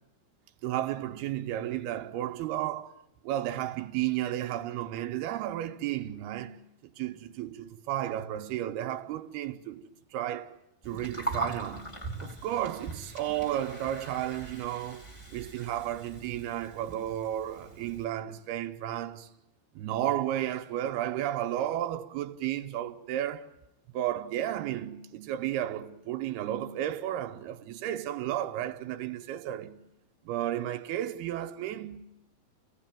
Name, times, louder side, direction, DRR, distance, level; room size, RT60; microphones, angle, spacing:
voice 1, 0.6-2.9 3.2-6.6 7.0-10.6 10.9-11.9 12.2-19.3 19.8-23.5 23.9-29.8 30.3-32.1, right 12 dB, 70° right, 2.8 m, -33 dB
Gurgling, 10.8-18.0, right 2 dB, 5° left, 3.6 m, -41 dB
28.5 x 18.0 x 9.1 m
omnidirectional pair, 5.0 m